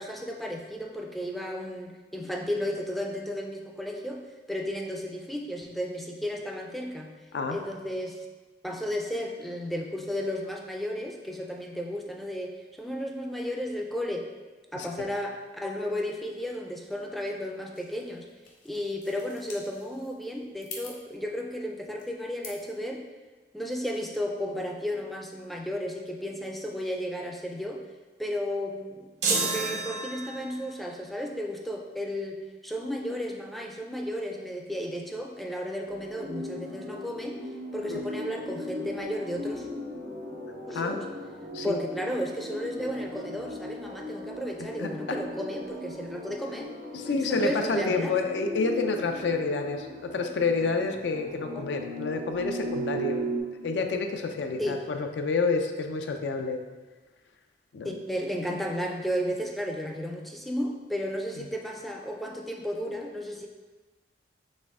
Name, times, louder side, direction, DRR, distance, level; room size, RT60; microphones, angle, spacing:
voice 1, 0.0-7.2 7.5-8.3 8.6-14.3 14.7-18.3 18.6-23.0 23.5-27.8 28.2-37.4 37.7-39.7 40.7-41.0 41.6-46.7 47.0-48.2 51.5-51.7 54.6-54.8 57.8-63.5, equal, ahead, 0 dB, 0.3 m, -33 dB
sound 1, 17.7-22.8, left 4 dB, 50° left, 0.8 m, -47 dB
sound 2, 29.2-30.7, right 3 dB, 70° right, 0.8 m, -29 dB
sound 3, 35.9-53.4, equal, 85° right, 1.3 m, -37 dB
voice 2, 44.6-45.2 46.9-53.2 53.6-56.6 57.7-58.0 61.4-61.5, left 4 dB, 80° left, 5 dB, 0.4 m, -29 dB
4.2 x 3.3 x 3.6 m, 1.3 s
head